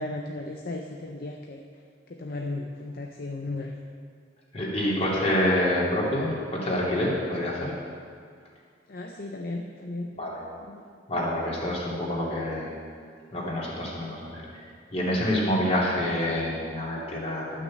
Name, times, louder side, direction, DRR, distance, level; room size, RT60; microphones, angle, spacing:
voice 1, 0.0-1.6 2.2-3.7 8.9-10.1 10.7-10.8, left 2 dB, 55° left, 2 dB, 0.7 m, -35 dB
voice 2, 4.5-7.7 10.1-10.4 11.1-12.7 13.3-14.4 14.9-17.6, left 1 dB, 35° left, -5 dB, 2.7 m, -27 dB
11.5 x 6.4 x 7.4 m, 2.1 s
head